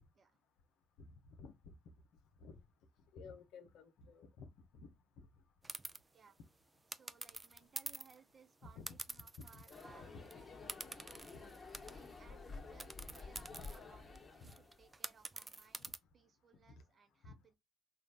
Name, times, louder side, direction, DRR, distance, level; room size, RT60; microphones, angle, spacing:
voice 1, 3.1-4.9 5.2-5.3 8.6-8.9 9.4-9.6 10.0-10.7 13.6-13.7 14.4-14.5 17.2-17.4, left 4 dB, 70° left, 0.6 m, -54 dB
sound 1, 5.6-6.0 6.9-8.2 8.9-9.9 10.2-10.3 10.7-12.2 12.8-16.0, right 2 dB, 25° right, 0.4 m, -47 dB
voice 2, 6.9-11.3 11.9-17.5, right 6 dB, 45° right, 0.8 m, -65 dB
sound 2, 9.7-14.9, left 4 dB, 30° left, 1.2 m, -52 dB
3.2 x 2.4 x 3.8 m
hypercardioid pair, 50°, 0 cm